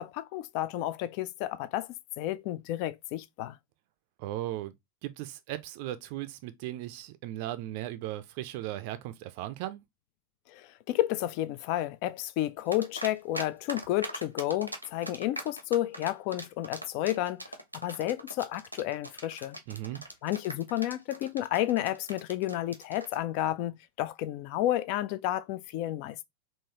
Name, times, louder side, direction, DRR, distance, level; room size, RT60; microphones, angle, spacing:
voice 1, 0.0-3.6 10.5-19.6 20.2-26.2, left 14 dB, 45° left, 0.3 m, -31 dB
voice 2, 4.2-4.7 5.0-9.8 19.7-20.0, right 14 dB, 45° right, 0.4 m, -37 dB
sound 1, 12.7-13.4 13.7-23.2, right 1 dB, 90° right, 0.6 m, -40 dB
3.8 x 2.6 x 2.9 m
figure-of-eight pair, 90°, 0 cm